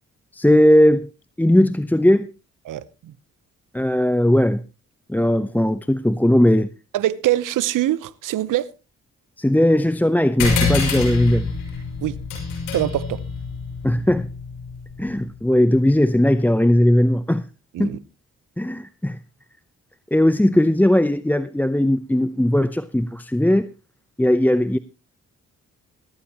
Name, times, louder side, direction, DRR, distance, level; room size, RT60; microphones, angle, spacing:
voice 1, 0.3-1.1 1.4-2.3 3.7-4.6 5.1-6.7 9.4-11.5 13.8-14.3 15.0-17.5 17.8-18.0 18.6-19.2 20.1-23.7 24.2-24.8, left 1 dB, 5° left, 0.7 m, -18 dB
voice 2, 2.7-3.1 6.9-8.7 12.0-12.2 12.7-13.2 17.7-18.0, right 14 dB, 75° right, 0.9 m, -23 dB
sound 1, 10.4-15.3, left 4 dB, 85° left, 5.4 m, -27 dB
17.5 x 14.0 x 3.0 m
supercardioid pair, 45°, 32 cm